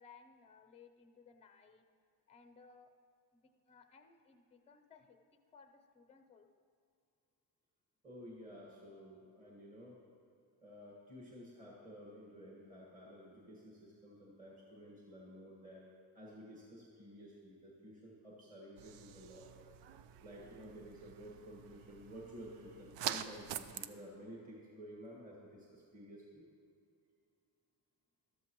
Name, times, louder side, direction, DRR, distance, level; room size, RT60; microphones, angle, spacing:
voice 1, 0.0-1.8 2.3-2.9 3.3-5.2 5.5-6.5, left 5 dB, 15° left, 7 dB, 0.5 m, -61 dB
voice 2, 8.0-10.0 10.6-15.9 16.1-19.5 20.2-26.5, equal, 20° right, -4 dB, 1.6 m, -53 dB
sound 1, 18.8-23.9, right 10 dB, 75° right, 0.6 m, -46 dB
13.5 x 12.5 x 3.0 m, 2.4 s
cardioid pair, 145°, 43 cm